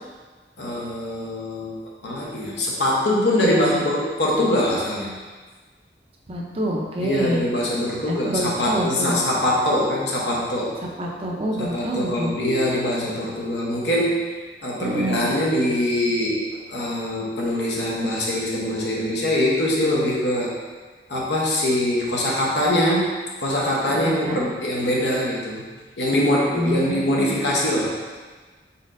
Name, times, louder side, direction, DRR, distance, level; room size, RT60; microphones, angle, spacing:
voice 1, 0.6-5.1 7.0-10.8 11.6-14.3 14.6-20.5 21.1-25.6 26.0-27.9, left 1 dB, 80° left, -3 dB, 0.9 m, -23 dB
voice 2, 6.3-7.4 8.1-9.2 11.0-12.3 14.8-15.3 24.0-24.4 26.5-27.3, right 1 dB, 35° right, -1 dB, 0.5 m, -26 dB
4.1 x 4.0 x 2.5 m, 1.4 s
head